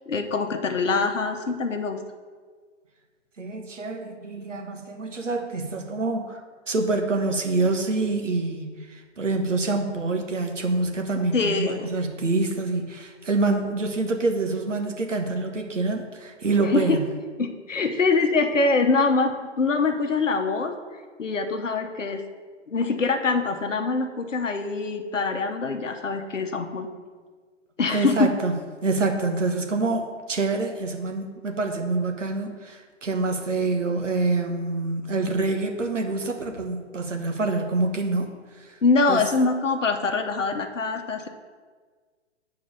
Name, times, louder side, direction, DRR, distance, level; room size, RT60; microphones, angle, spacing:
voice 1, 0.1-2.0 11.2-11.9 16.6-17.0 17.4-20.8 21.2-22.2 22.7-26.9 27.8-28.3 38.8-41.3, left 4 dB, 85° left, 5 dB, 1.0 m, -24 dB
voice 2, 3.4-6.4 6.7-17.0 27.9-28.6 28.8-38.8 39.1-39.2, right 3 dB, 85° right, 3 dB, 1.3 m, -26 dB
7.3 x 4.7 x 6.6 m, 1.5 s
figure-of-eight pair, 130°, 36 cm